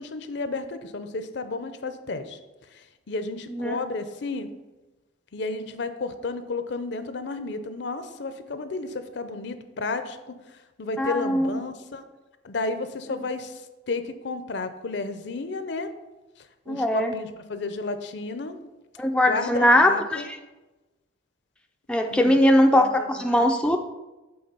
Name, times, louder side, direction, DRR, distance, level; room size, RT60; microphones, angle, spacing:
voice 1, 0.0-2.4 2.7-4.5 5.3-12.0 12.4-15.9 16.4-18.6 19.3-20.3 22.1-22.4 22.7-23.8, left 3 dB, 60° left, 10 dB, 0.6 m, -32 dB
voice 2, 11.0-11.6 16.7-17.1 19.0-20.2 21.9-23.8, left 1 dB, 5° left, 3 dB, 0.3 m, -20 dB
7.8 x 3.7 x 5.2 m, 1.1 s
head